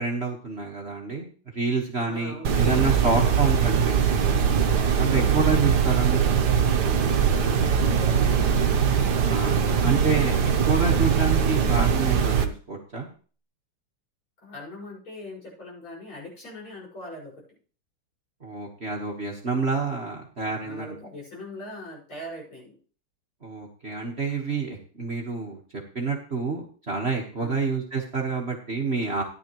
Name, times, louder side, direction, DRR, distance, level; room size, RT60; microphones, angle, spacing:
voice 1, 0.0-4.0 5.0-6.4 9.2-13.1 18.4-20.9 23.4-25.6 25.9-29.2, right 4 dB, 35° right, -1 dB, 1.4 m, -28 dB
voice 2, 2.0-2.6 5.0-5.4 7.3-8.5 14.4-17.3 20.6-22.8 27.4-27.7, left 1 dB, 70° left, -5 dB, 6.6 m, -41 dB
sound 1, 2.4-12.5, right 7 dB, 55° right, 1.4 m, -21 dB
14.0 x 11.0 x 3.1 m, 0.40 s
omnidirectional pair, 2.4 m